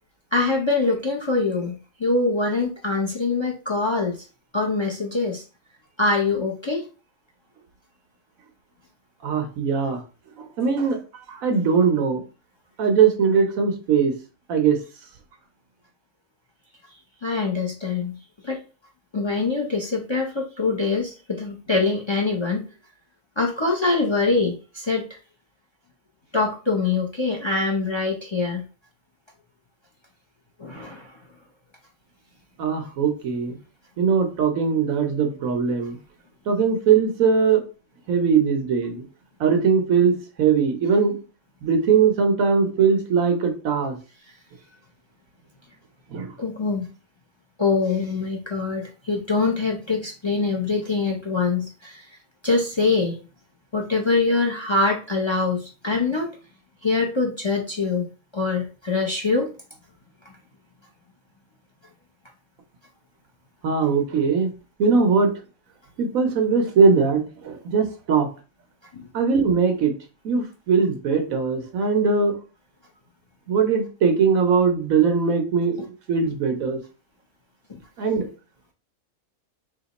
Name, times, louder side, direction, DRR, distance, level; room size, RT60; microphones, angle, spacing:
voice 1, 0.3-4.2 4.5-5.4 6.0-6.9 17.2-18.2 18.4-18.6 19.1-22.6 23.4-25.1 26.3-28.7 30.6-31.1 46.4-46.9 47.6-52.0 52.4-53.1 53.7-56.3 56.8-59.5 68.9-69.0 77.7-77.8, left 3 dB, 40° left, 2 dB, 0.4 m, -24 dB
voice 2, 9.2-10.0 10.4-11.0 11.3-12.2 12.8-14.1 14.5-14.8 32.6-33.6 34.0-36.0 36.5-37.6 38.1-39.0 39.4-41.2 41.6-44.0 46.1-46.3 63.6-64.5 64.8-65.3 66.0-68.3 69.1-69.9 70.2-72.4 73.5-76.8 78.0-78.3, right 5 dB, 75° right, 5 dB, 1.3 m, -20 dB
3.4 x 2.9 x 4.0 m, 0.34 s
omnidirectional pair, 1.5 m